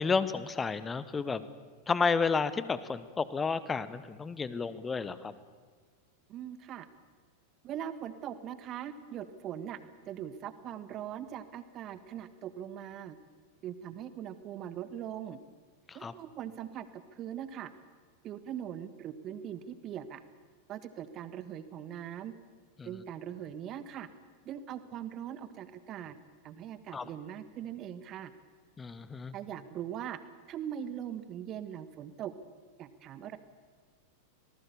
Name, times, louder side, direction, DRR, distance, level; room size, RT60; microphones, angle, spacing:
voice 1, 0.0-1.4 1.9-5.3 15.9-16.1 22.8-22.9 26.9-27.1 28.8-29.3, left 5 dB, 15° left, 15 dB, 1.1 m, -31 dB
voice 2, 6.3-6.9 7.6-9.8 10.1-13.2 13.6-15.4 15.9-17.7 18.2-20.2 20.7-22.3 22.8-24.1 24.4-26.2 26.4-28.3 29.3-30.2 30.5-32.3 32.8-33.4, right 10 dB, 35° right, 13 dB, 1.4 m, -41 dB
25.5 x 19.0 x 7.0 m, 1.5 s
figure-of-eight pair, 90°, 0 cm